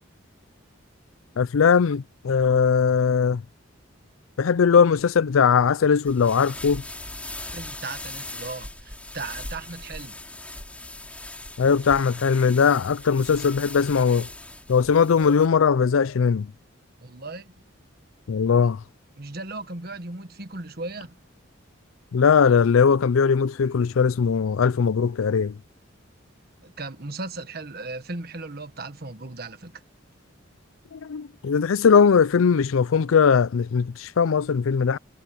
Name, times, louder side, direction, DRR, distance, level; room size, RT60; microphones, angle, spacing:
voice 1, 1.4-3.4 4.4-6.8 11.6-14.3 14.7-16.5 18.3-18.8 22.1-25.5 30.9-35.0, left 6 dB, 85° left, 0.4 m, -20 dB
sound 1, 6.0-15.5, left 2 dB, 5° left, 3.2 m, -39 dB
voice 2, 7.5-10.2 17.0-17.5 19.2-21.2 26.6-29.8, right 3 dB, 50° right, 1.5 m, -37 dB
head